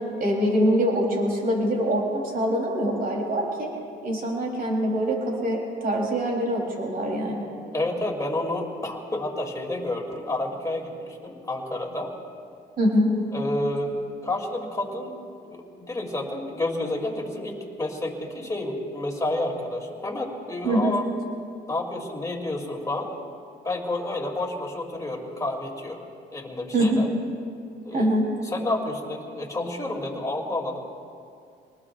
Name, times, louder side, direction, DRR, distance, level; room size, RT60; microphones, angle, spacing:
voice 1, 0.2-3.7 4.0-7.4 12.8-13.1 20.6-20.9 26.7-27.0 27.9-28.2, equal, 50° right, -1 dB, 3.8 m, -24 dB
voice 2, 7.7-12.1 13.3-15.1 15.4-21.0 21.7-23.1 23.6-26.0 26.3-27.1 27.8-28.2 28.4-30.8, left 1 dB, 15° left, 0 dB, 3.0 m, -30 dB
26.5 x 19.5 x 2.6 m, 2.3 s
cardioid pair, 90°, 20 cm